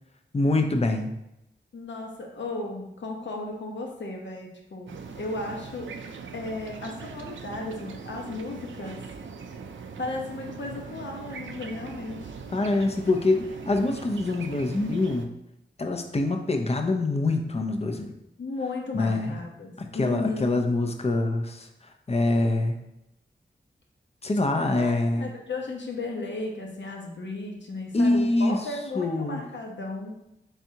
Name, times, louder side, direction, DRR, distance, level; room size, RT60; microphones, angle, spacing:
voice 1, 0.3-1.1 12.5-15.3 15.8-18.1 18.9-19.4 19.8-22.8 24.2-25.3 27.9-28.7 28.9-29.4, left 2 dB, 30° left, 4 dB, 0.6 m, -25 dB
voice 2, 1.7-5.9 6.3-9.0 10.0-12.3 18.4-20.5 24.8-30.1, left 2 dB, 70° left, 0 dB, 0.9 m, -35 dB
sound 1, 4.9-15.3, right 5 dB, 80° right, 0.4 m, -41 dB
4.0 x 3.5 x 2.8 m, 0.85 s
cardioid pair, 55°, 20 cm